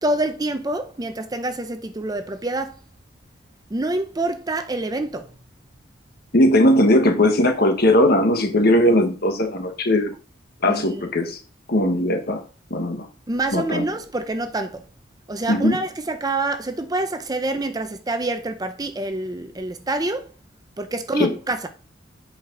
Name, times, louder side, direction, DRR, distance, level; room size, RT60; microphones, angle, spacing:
voice 1, 0.0-2.8 3.7-5.3 10.6-11.0 13.3-14.9 15.3-20.3 20.8-21.7, right 2 dB, 20° right, 0.6 m, -26 dB
voice 2, 6.3-10.1 10.6-11.4 11.7-12.4 12.7-13.1 13.5-13.8 15.5-15.8 21.2-21.3, left 1 dB, 55° left, 1.3 m, -18 dB
8.3 x 4.9 x 3.8 m
head